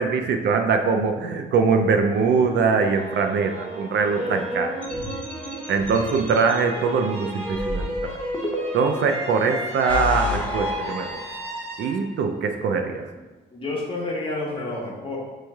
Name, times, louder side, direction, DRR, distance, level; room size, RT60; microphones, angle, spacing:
voice 1, 0.0-4.7 5.7-8.2 8.7-11.1 11.8-13.0, right 5 dB, 60° right, 5 dB, 0.4 m, -22 dB
sound 1, 2.1-13.2, equal, 30° right, 1.1 m, -34 dB
voice 2, 4.2-4.6 13.5-15.2, left 2 dB, 25° left, -3 dB, 1.2 m, -30 dB
sound 2, 4.8-6.5 7.5-9.0 9.6-11.8, left 2 dB, 5° left, 0.8 m, -31 dB
6.1 x 3.1 x 2.3 m, 1.2 s
cardioid pair, 90°, 20 cm